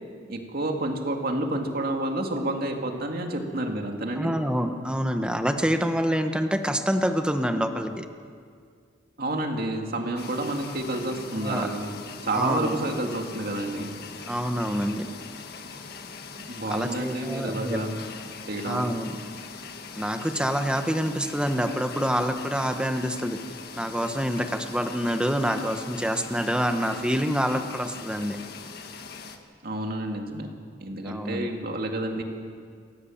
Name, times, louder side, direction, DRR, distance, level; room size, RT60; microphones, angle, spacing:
voice 1, 0.3-4.3 9.2-12.0 12.2-13.9 16.4-18.0 18.5-18.9 29.6-30.5 30.8-32.2, right 1 dB, 55° right, 3 dB, 2.4 m, -29 dB
voice 2, 4.2-8.1 11.4-11.7 12.3-12.8 14.3-15.0 16.7-17.8 18.7-19.2 19.9-23.4 23.7-28.4 31.0-31.5, equal, 5° right, 6 dB, 1.2 m, -27 dB
sound 1, 10.2-29.4, left 4 dB, 60° left, 1.6 m, -41 dB
28.5 x 14.5 x 7.3 m, 2.1 s
head